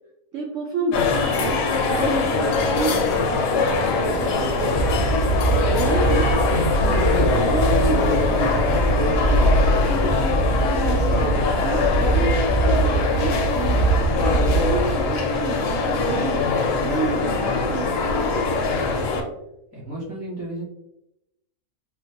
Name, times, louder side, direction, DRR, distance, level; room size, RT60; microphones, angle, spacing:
voice 1, 0.3-1.6 1.9-3.0 3.3-5.0 5.7-6.3 7.1-13.9 14.2-16.4 16.8-18.4, right 4 dB, 70° right, -2 dB, 0.7 m, -30 dB
sound 1, 0.9-19.2, left 4 dB, 85° left, 1.2 m, -22 dB
sound 2, 4.7-15.1, right 2 dB, 60° left, 0.7 m, -22 dB
voice 2, 19.7-20.6, right 1 dB, 25° left, -8 dB, 0.5 m, -33 dB
3.6 x 2.1 x 2.7 m, 0.86 s
omnidirectional pair, 1.7 m